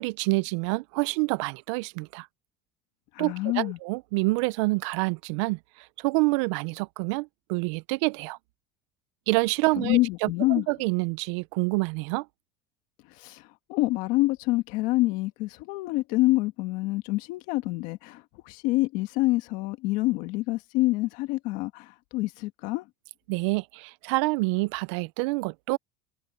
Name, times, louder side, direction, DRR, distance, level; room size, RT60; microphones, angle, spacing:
voice 1, 0.0-2.3 3.2-5.6 6.0-8.4 9.3-12.3 23.3-25.8, right 25 dB, 75° right, 0.5 m, -27 dB
voice 2, 3.1-3.8 9.8-10.7 13.2-13.4 13.7-22.8, left 20 dB, 60° left, 1.6 m, -26 dB
cardioid pair, 170°, 15 cm